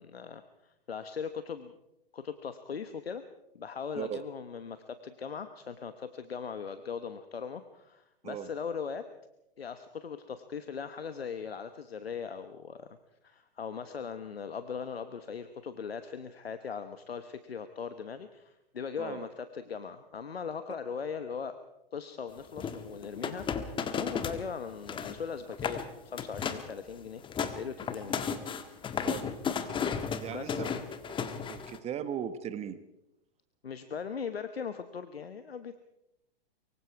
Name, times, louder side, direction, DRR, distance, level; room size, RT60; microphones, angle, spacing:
voice 1, 0.0-1.7 2.1-3.2 3.5-9.1 9.6-13.0 13.2-21.6 21.9-27.2 27.5-28.1 30.3-30.8 33.6-35.8, left 6 dB, 80° left, 10 dB, 1.3 m, -39 dB
sound 1, 22.6-24.4 24.7-25.2 25.5-25.8 26.2-26.7 27.1-31.8, left 7 dB, 15° left, 1.5 m, -34 dB
voice 2, 30.2-30.7 31.0-31.1 31.5-32.8, right 9 dB, 20° right, 13 dB, 1.2 m, -37 dB
24.0 x 24.0 x 4.7 m, 0.89 s
figure-of-eight pair, 115°, 30 cm